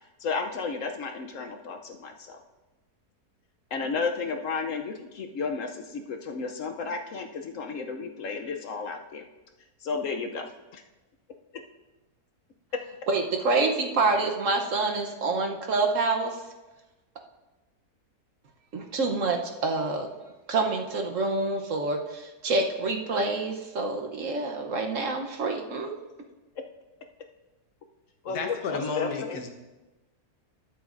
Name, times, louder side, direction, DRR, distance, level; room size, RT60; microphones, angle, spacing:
voice 1, 0.2-2.4 3.7-9.3 9.8-10.5 28.2-29.4, left 4 dB, 65° left, 5 dB, 0.9 m, -33 dB
voice 2, 13.1-16.4 18.7-20.1 20.5-25.9, right 3 dB, 60° right, 3 dB, 1.2 m, -27 dB
voice 3, 28.2-29.5, left 4 dB, 80° left, 4 dB, 1.6 m, -32 dB
21.0 x 7.1 x 2.5 m, 1.1 s
omnidirectional pair, 1.6 m